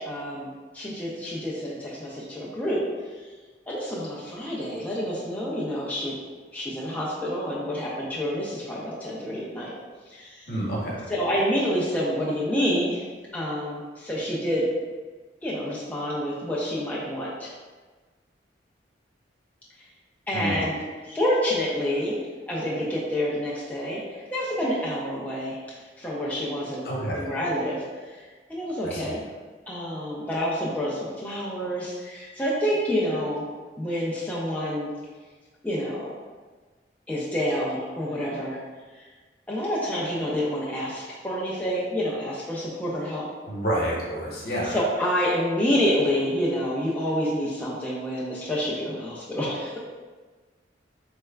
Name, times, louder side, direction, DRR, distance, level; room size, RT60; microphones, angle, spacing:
voice 1, 0.0-2.8 3.7-6.1 6.5-9.7 10.1-10.5 11.1-13.1 13.3-14.7 15.4-17.5 20.3-22.2 22.5-24.0 24.3-25.6 26.0-26.9 27.1-27.8 28.1-29.2 29.7-33.4 33.8-34.9 35.6-36.1 37.1-38.6 39.0-39.1 39.5-43.2 44.6-49.8, equal, 10° left, -7 dB, 0.5 m, -28 dB
voice 2, 10.5-11.0 20.3-20.6 26.8-27.3 28.8-29.1 43.4-44.8, right 1 dB, 55° left, -5 dB, 1.0 m, -29 dB
4.0 x 3.2 x 2.3 m, 1.4 s
head